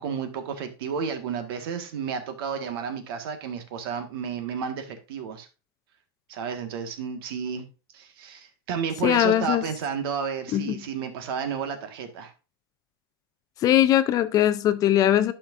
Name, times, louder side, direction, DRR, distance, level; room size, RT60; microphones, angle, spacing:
voice 1, 0.0-5.5 6.3-7.7 7.9-12.3, right 6 dB, 70° right, 6 dB, 1.7 m, -32 dB
voice 2, 9.0-9.6 10.5-10.7 13.6-15.3, left 12 dB, 30° left, 12 dB, 0.5 m, -20 dB
11.5 x 5.8 x 2.6 m, 0.31 s
supercardioid pair, 155°, 13 cm